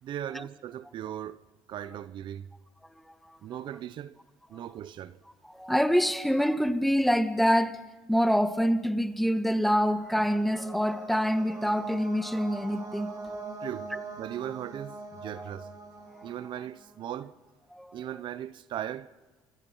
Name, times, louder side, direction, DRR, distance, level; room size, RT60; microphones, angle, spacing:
voice 1, 0.0-1.4 1.7-2.5 3.4-4.2 4.5-5.2 13.6-13.9 14.2-15.7 16.2-17.3 17.9-19.1, right 11 dB, 60° right, 0.9 m, -38 dB
voice 2, 3.1-3.4 4.5-4.7 5.4-7.8 8.1-13.4 16.1-16.3 17.7-18.0, equal, ahead, 1.9 m, -26 dB
sound 1, 9.3-17.1, right 3 dB, 40° right, 7.7 m, -43 dB
28.5 x 24.5 x 5.7 m
supercardioid pair, 80°, 9 cm